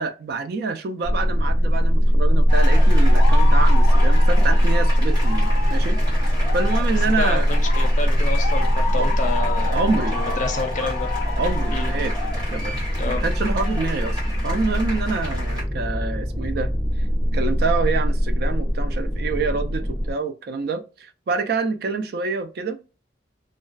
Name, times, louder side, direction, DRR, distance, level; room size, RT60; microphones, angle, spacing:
voice 1, 0.0-7.5 8.9-9.1 9.7-10.4 11.4-12.1 12.5-12.8 13.1-16.7 17.3-22.8, right 4 dB, 60° right, 0.3 m, -27 dB
sound 1, 1.0-20.1, equal, 5° left, 0.8 m, -20 dB
sound 2, 2.5-15.6, left 3 dB, 25° right, 1.2 m, -32 dB
voice 2, 7.2-9.8 10.1-11.1 11.7-11.9 13.0-13.2, left 3 dB, 45° left, 0.5 m, -29 dB
2.3 x 2.2 x 2.4 m
head